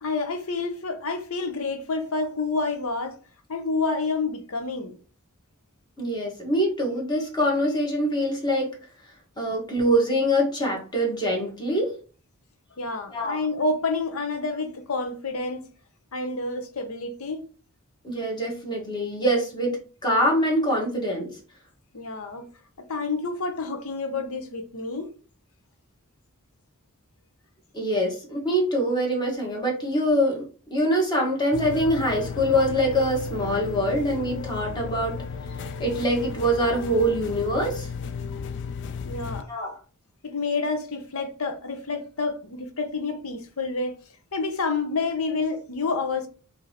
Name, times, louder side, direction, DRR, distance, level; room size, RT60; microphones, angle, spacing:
voice 1, 0.0-3.2 3.5-5.0 12.8-15.7 16.1-17.4 21.9-22.5 22.9-25.1 39.0-39.5 40.2-44.0 44.3-46.3, left 3 dB, 70° left, 0.8 m, -28 dB
voice 2, 6.0-8.7 9.4-11.9 13.1-13.4 18.0-19.7 20.0-21.4 27.7-35.2 35.8-37.9 39.5-39.8, equal, 20° left, 1.4 m, -24 dB
sound 1, 31.5-39.4, left 6 dB, 55° left, 0.3 m, -34 dB
5.1 x 2.8 x 2.9 m
head